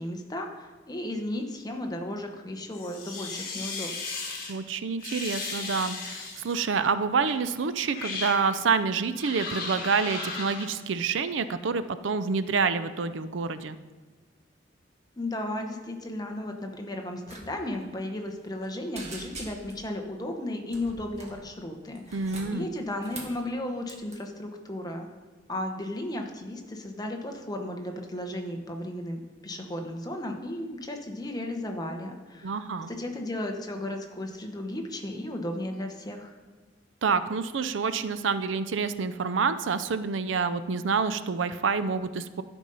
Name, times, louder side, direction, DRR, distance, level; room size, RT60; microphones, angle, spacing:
voice 1, 0.0-3.9 4.2-4.3 15.2-25.1 25.5-32.6 32.9-36.3, left 1 dB, 20° left, 3 dB, 1.0 m, -35 dB
sound 1, 2.7-4.5 5.0-6.6 7.2-7.4 7.9-8.4 9.1-10.7, left 4 dB, 55° left, 1.6 m, -36 dB
voice 2, 4.5-13.8 22.1-22.7 32.4-32.9 37.0-42.4, right 5 dB, 85° right, 13 dB, 0.5 m, -27 dB
sound 2, 17.2-17.4 17.7-17.9 18.3-18.7 18.9-19.9 20.7-21.4 22.0-23.4 23.9-24.2, right 2 dB, 35° right, 1.7 m, -43 dB
12.5 x 5.3 x 5.5 m, 1.3 s
head